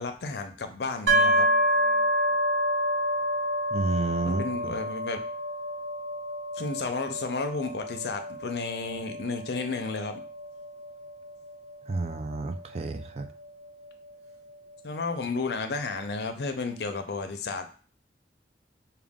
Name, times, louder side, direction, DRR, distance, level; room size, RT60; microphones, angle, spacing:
voice 1, 0.0-1.5 4.2-5.2 6.6-10.1 14.8-17.7, left 4 dB, 70° left, 7 dB, 0.5 m, -32 dB
Ringing Cup, 1.1-14.8, equal, 80° right, 0.9 m, -29 dB
voice 2, 3.7-4.4 11.9-13.3, right 3 dB, 35° right, 8 dB, 0.3 m, -30 dB
4.9 x 2.3 x 3.5 m, 0.40 s
head